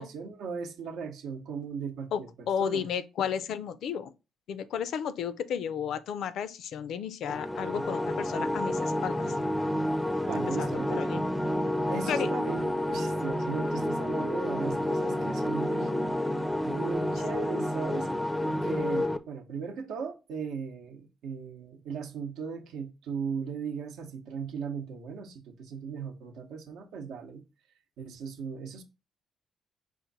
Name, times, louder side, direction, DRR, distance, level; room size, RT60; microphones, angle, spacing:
voice 1, 0.0-2.9 7.7-7.9 10.2-11.2 11.9-16.3 16.6-18.1 18.5-27.4 28.0-28.8, right 6 dB, 85° right, 0.7 m, -37 dB
voice 2, 2.5-4.1 4.5-9.3 10.6-11.2 12.1-12.3, left 8 dB, 75° left, 0.4 m, -33 dB
sound 1, 7.3-19.2, left 1 dB, 5° left, 0.4 m, -29 dB
5.0 x 2.5 x 3.9 m
cardioid pair, 90°, 0 cm